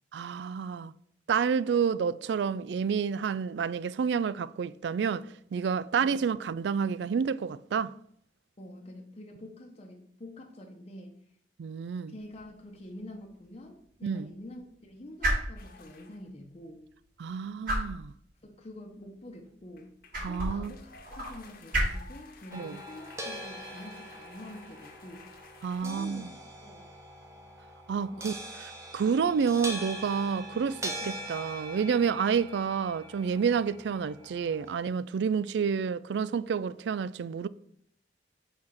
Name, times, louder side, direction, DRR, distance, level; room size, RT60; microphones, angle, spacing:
voice 1, 0.1-0.9 1.3-7.9 11.6-12.1 14.0-14.3 17.2-18.1 20.2-20.8 22.5-22.8 25.6-26.3 27.9-28.3 28.9-37.5, right 6 dB, 70° right, 0.3 m, -29 dB
voice 2, 8.6-11.2 12.1-16.8 18.4-19.9 20.3-25.3 25.8-26.3 26.6-26.9 27.9-28.4 30.6-30.7 31.0-31.1, left 1 dB, 35° left, 0.9 m, -46 dB
sound 1, 12.2-25.8, right 1 dB, 50° right, 3.5 m, -38 dB
sound 2, 15.6-16.3 19.6-25.9, left 4 dB, 55° left, 1.1 m, -53 dB
sound 3, 22.5-34.8, right 1 dB, 15° right, 0.9 m, -42 dB
5.8 x 4.4 x 6.3 m
head